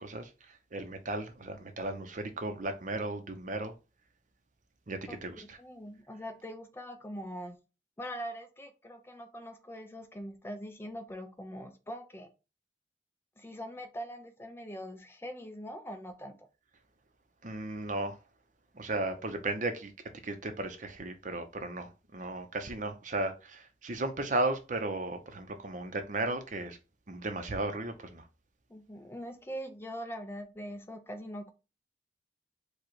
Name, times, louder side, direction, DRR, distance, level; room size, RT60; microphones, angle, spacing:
voice 1, 0.0-3.7 4.9-5.6 17.4-18.2 18.7-19.9 20.2-26.8 27.1-28.3, right 2 dB, 45° right, 0.7 m, -35 dB
voice 2, 5.6-7.6 8.0-12.3 13.4-16.5 28.7-31.5, equal, 15° left, 0.5 m, -42 dB
4.8 x 2.3 x 4.6 m
head